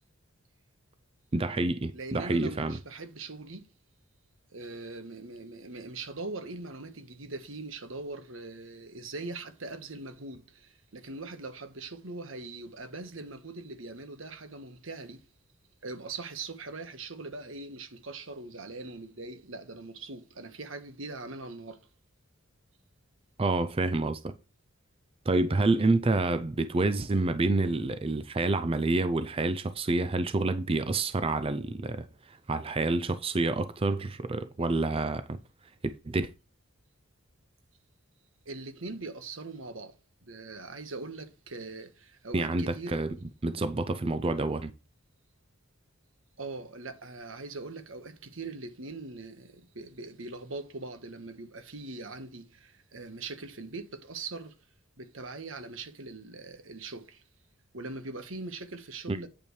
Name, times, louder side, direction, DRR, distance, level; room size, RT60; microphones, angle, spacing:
voice 1, 1.3-2.8 23.4-24.3 25.3-35.4 36.1-36.3 42.3-43.2 43.4-44.7 59.1-59.2, right 2 dB, 30° right, 0.5 m, -28 dB
voice 2, 1.9-3.7 4.5-15.2 15.8-21.8 38.4-39.9 40.2-43.0 46.4-54.5 55.0-57.2 57.7-59.3, right 3 dB, 70° right, 1.4 m, -41 dB
8.8 x 8.2 x 3.2 m
head